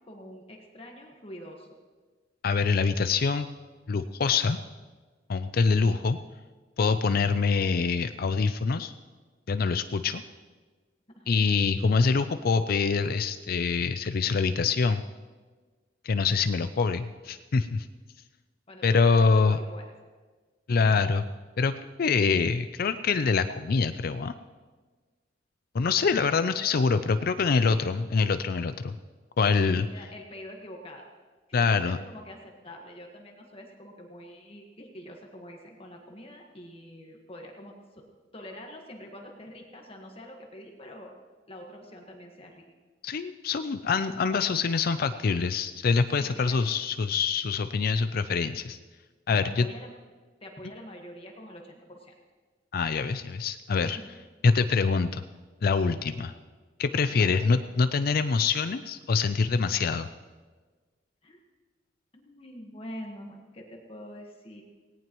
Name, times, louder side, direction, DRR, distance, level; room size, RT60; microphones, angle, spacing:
voice 1, 0.1-1.7 11.2-11.3 18.7-19.9 29.5-31.1 31.5-38.0 38.3-41.1 41.5-42.6 46.2-46.6 49.3-50.0 50.4-52.1 53.9-54.1 57.1-57.5 61.2-61.4 62.1-64.6, equal, 30° left, 1 dB, 1.5 m, -45 dB
voice 2, 2.4-3.5 3.9-4.6 5.3-6.2 6.8-8.9 9.5-10.2 11.3-15.0 16.0-17.9 18.8-19.6 20.7-21.2 21.6-21.7 22.0-24.3 25.7-29.0 29.4-29.9 31.5-32.0 43.0-48.8 49.3-49.7 52.7-54.0 54.4-55.2 55.6-56.3 56.8-60.1, left 4 dB, 55° left, 11 dB, 0.4 m, -25 dB
18.0 x 18.0 x 3.1 m, 1.4 s
head